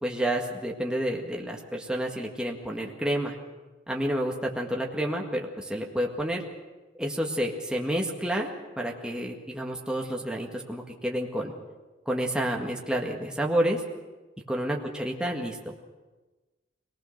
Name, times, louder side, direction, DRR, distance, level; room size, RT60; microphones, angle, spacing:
voice 1, 0.0-3.3 3.9-6.4 7.0-8.5 8.8-11.5 12.1-13.8 14.5-15.6, right 1 dB, 5° right, -1 dB, 1.7 m, -29 dB
23.5 x 19.0 x 6.6 m, 1.2 s
head